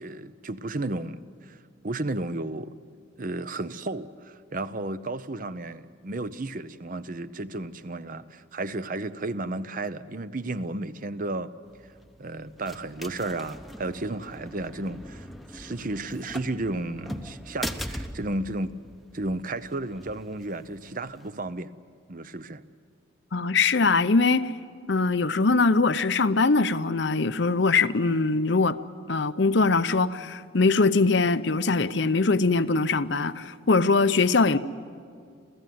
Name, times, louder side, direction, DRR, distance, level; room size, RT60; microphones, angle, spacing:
voice 1, 0.0-1.6 1.8-2.8 3.2-11.5 12.2-15.3 15.5-18.8 19.1-21.7 22.1-22.6, right 2 dB, 45° right, 0.7 m, -33 dB
sound 1, 11.7-21.3, equal, ahead, 0.8 m, -41 dB
voice 2, 23.3-24.4 24.9-28.8 29.1-34.6, left 3 dB, 60° left, 0.7 m, -22 dB
27.5 x 16.0 x 9.4 m
head